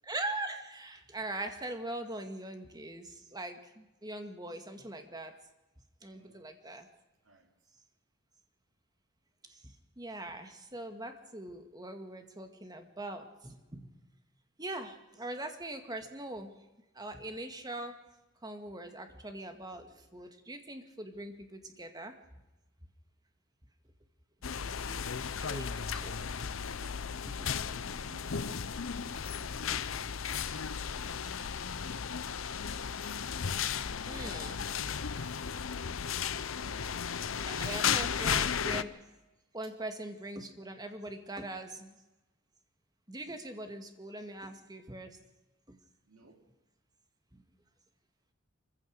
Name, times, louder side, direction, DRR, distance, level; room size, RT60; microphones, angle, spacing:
voice 1, 0.1-5.4 6.0-6.9 9.5-13.9 14.6-16.5 17.0-18.0 18.4-22.1 25.4-26.2 27.3-27.5 29.7-29.8 30.4-30.5 34.1-34.5 37.5-38.9 39.5-41.9 43.1-45.2 45.7-45.8 47.3-47.4, right 1 dB, 20° right, 6 dB, 2.0 m, -42 dB
sound 1, 24.4-38.8, left 7 dB, 75° left, 0.7 m, -35 dB
voice 2, 24.4-25.5 26.6-27.1 27.6-28.7 29.4-30.1 30.6-31.4 33.5-35.3 36.5-38.1 39.6-39.7 43.3-43.5 46.1-46.5, right 2 dB, 75° right, 3 dB, 3.5 m, -59 dB
25.0 x 15.5 x 6.6 m, 1.1 s
head